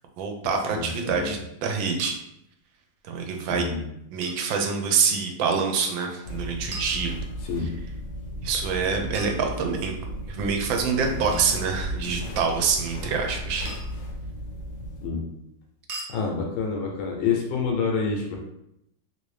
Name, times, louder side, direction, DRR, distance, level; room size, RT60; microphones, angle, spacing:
voice 1, 0.2-2.2 3.0-3.7 4.1-7.2 8.4-10.0 10.3-13.7, right 5 dB, 85° right, 3 dB, 1.4 m, -26 dB
voice 2, 0.7-1.3 3.5-3.9 7.4-7.7 11.1-11.4 15.0-15.3 16.1-18.4, left 5 dB, 90° left, 0 dB, 1.4 m, -28 dB
sound 1, 2.0-2.1 4.2-4.5 6.7-7.6 9.1-10.0 11.3-11.6 13.6-14.1 15.9-16.2, right 2 dB, 65° right, 0.6 m, -40 dB
sound 2, 6.2-15.1, equal, 70° left, 1.0 m, -35 dB
3.4 x 2.6 x 3.2 m, 0.81 s
omnidirectional pair, 2.1 m